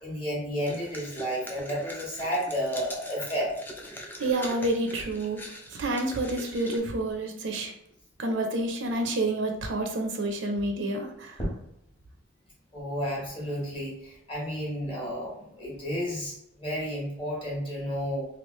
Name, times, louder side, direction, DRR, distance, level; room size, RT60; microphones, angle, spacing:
voice 1, 0.0-3.6 12.7-18.3, equal, 25° left, -4 dB, 1.2 m, -32 dB
sound 1, 0.6-6.8, equal, 10° left, 0.4 m, -42 dB
voice 2, 4.2-5.4 5.7-7.7 8.2-11.4, right 2 dB, 70° right, 4 dB, 0.5 m, -29 dB
3.1 x 2.4 x 3.1 m, 0.79 s
head